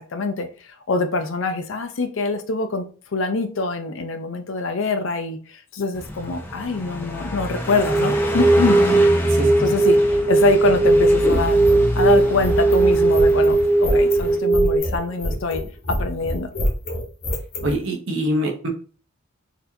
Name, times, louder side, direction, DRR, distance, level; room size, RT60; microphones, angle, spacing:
voice 1, 0.0-2.9 3.1-8.8 9.6-11.6 11.9-15.6 15.9-16.5, left 3 dB, 65° left, 8 dB, 0.5 m, -24 dB
Car passing by, 5.9-14.4, left 1 dB, 10° left, 0.4 m, -28 dB
sound 1, 7.8-14.8, right 2 dB, 25° right, 1.1 m, -18 dB
sound 2, 10.9-17.7, left 1 dB, 45° left, 1.1 m, -26 dB
voice 2, 17.6-18.7, equal, 60° right, 3 dB, 0.8 m, -24 dB
4.1 x 2.8 x 2.7 m, 0.38 s
head